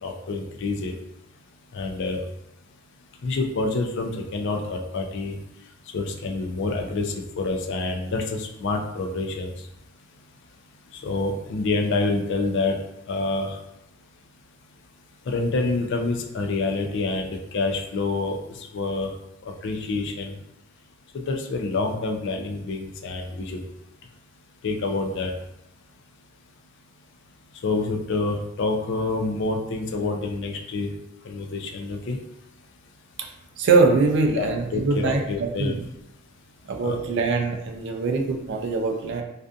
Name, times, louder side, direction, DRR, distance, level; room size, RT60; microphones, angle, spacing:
voice 1, 0.0-0.9 1.7-2.2 3.2-5.4 5.9-9.5 11.0-12.8 13.1-13.5 15.3-18.4 18.7-19.1 19.6-20.3 21.3-23.6 24.6-25.3 27.6-30.9 31.3-32.2 34.3-35.7 36.8-37.0, left 3 dB, 55° left, 2 dB, 0.4 m, -27 dB
voice 2, 33.6-35.8 36.7-39.2, right 3 dB, 55° right, 3 dB, 0.4 m, -23 dB
2.5 x 2.4 x 2.3 m, 0.86 s
head